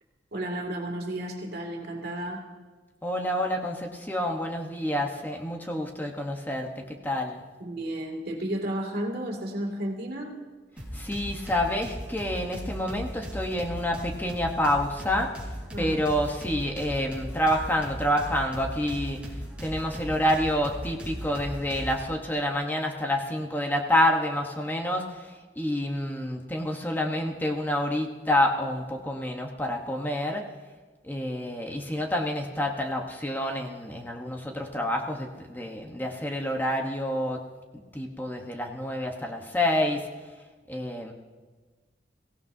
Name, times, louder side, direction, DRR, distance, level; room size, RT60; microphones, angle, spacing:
voice 1, 0.3-2.4 7.6-10.4 15.7-16.0, right 1 dB, 60° right, 1 dB, 2.5 m, -32 dB
voice 2, 3.0-7.4 10.9-15.3 15.8-19.2 19.6-30.4 31.0-37.4 37.9-40.1 40.7-41.1, left 1 dB, 10° left, 1 dB, 1.1 m, -28 dB
sound 1, 10.8-22.1, equal, 5° right, 3.7 m, -38 dB
23.0 x 16.5 x 2.7 m, 1.4 s
head